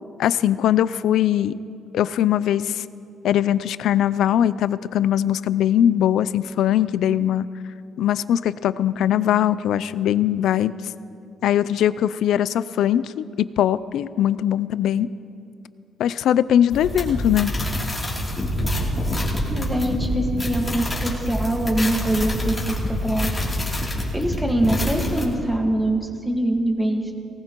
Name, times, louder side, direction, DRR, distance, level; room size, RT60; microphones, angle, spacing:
voice 1, 0.2-1.6 1.9-2.8 3.2-7.5 8.0-10.7 11.4-15.1 16.0-17.5, left 10 dB, 80° left, 17 dB, 0.3 m, -21 dB
sound 1, 16.7-25.2, left 1 dB, 20° left, 2.9 m, -26 dB
voice 2, 19.5-23.3 24.1-27.1, right 1 dB, 10° right, 3 dB, 1.6 m, -24 dB
19.0 x 17.5 x 3.0 m, 2.6 s
cardioid pair, 90°, 0 cm